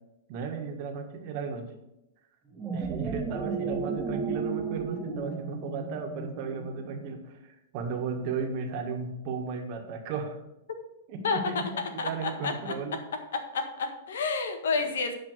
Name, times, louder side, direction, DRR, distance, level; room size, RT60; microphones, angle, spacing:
voice 1, 0.3-1.7 2.7-10.4 11.1-13.0, right 5 dB, 50° right, 4 dB, 1.6 m, -35 dB
sound 1, 2.5-7.1, right 4 dB, 15° right, 1.4 m, -34 dB
voice 2, 12.0-12.7 13.5-15.1, left 4 dB, 85° left, 7 dB, 1.6 m, -30 dB
9.4 x 5.1 x 6.7 m, 0.89 s
hypercardioid pair, 145°, 0 cm